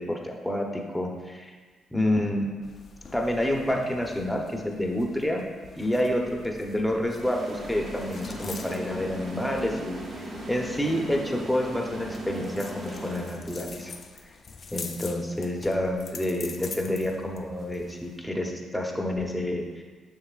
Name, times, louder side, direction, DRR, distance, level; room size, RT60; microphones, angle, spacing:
voice 1, 0.0-1.5 1.9-2.5 3.1-5.4 5.8-13.9 14.7-19.8, left 1 dB, 5° left, 0 dB, 0.9 m, -28 dB
sound 1, 2.6-18.2, left 4 dB, 45° left, 0.5 m, -45 dB
sound 2, 7.2-13.8, right 1 dB, 50° right, 1.7 m, -38 dB
7.1 x 6.3 x 2.4 m, 1.4 s
cardioid pair, 90°, 0 cm